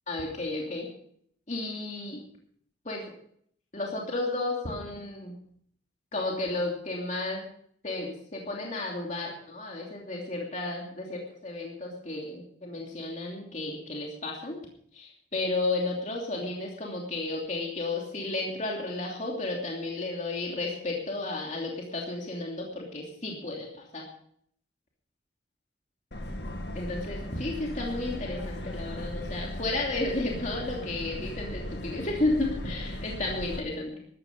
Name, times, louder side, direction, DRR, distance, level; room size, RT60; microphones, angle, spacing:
voice 1, 0.1-0.9 1.5-2.2 2.8-3.1 3.7-5.3 6.1-7.5 7.8-14.6 14.9-24.0 26.7-34.0, left 2 dB, 40° left, -1 dB, 2.9 m, -33 dB
Subway metro underground, 26.1-33.6, left 1 dB, 65° left, 2.1 m, -37 dB
14.5 x 13.0 x 5.3 m, 0.64 s
head